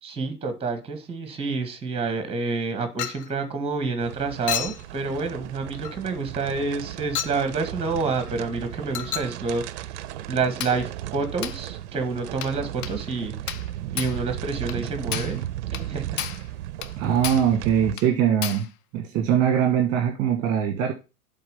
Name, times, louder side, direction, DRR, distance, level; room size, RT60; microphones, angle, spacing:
voice 1, 0.0-10.0 10.3-13.6 13.9-16.2, right 4 dB, 10° right, 1.8 m, -28 dB
Chink clink, 3.0-3.3 4.5-4.8 5.8-6.0 7.2-7.4 8.9-9.4 10.6-10.8 11.4-11.6 12.4-12.6 12.8-13.0 13.5-13.7 14.0-14.2 14.7-14.8 15.1-15.4 15.7-15.9 16.2-16.5 16.8-17.0 17.2-17.5 18.0-18.1 18.4-18.7, left 11 dB, 35° left, 0.6 m, -31 dB
sound 1, 4.0-18.0, right 13 dB, 50° right, 0.6 m, -35 dB
voice 2, 17.0-18.7 18.9-20.9, right 9 dB, 35° right, 1.2 m, -22 dB
7.8 x 3.8 x 6.8 m
figure-of-eight pair, 95°, 45 cm